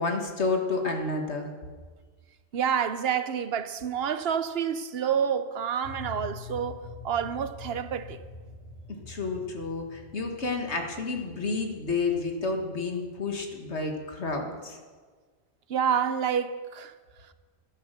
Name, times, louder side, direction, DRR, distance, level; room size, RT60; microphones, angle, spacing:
voice 1, 0.0-1.5 9.1-14.8, left 3 dB, 90° left, 2.0 m, -30 dB
voice 2, 2.5-8.2 15.7-16.9, right 8 dB, 65° right, 0.9 m, -28 dB
sound 1, 5.8-14.3, left 3 dB, 40° left, 2.6 m, -46 dB
12.5 x 11.0 x 6.7 m
omnidirectional pair, 1.1 m